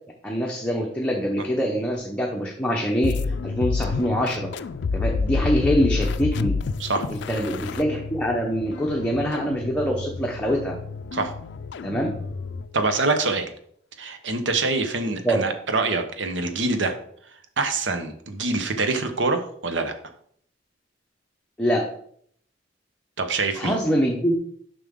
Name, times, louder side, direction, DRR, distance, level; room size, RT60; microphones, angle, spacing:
voice 1, 0.2-3.1 3.4-4.5 4.9-6.6 7.1-10.8 11.8-12.1 15.2-15.4 21.6-21.9 23.6-24.4, equal, 5° left, -1 dB, 0.8 m, -24 dB
sound 1, 3.0-12.7, left 4 dB, 65° left, 0.4 m, -29 dB
voice 2, 12.7-13.5 14.0-16.9 17.6-19.9 23.2-23.8, right 3 dB, 80° right, 7 dB, 1.0 m, -25 dB
7.2 x 5.4 x 3.7 m, 0.63 s
head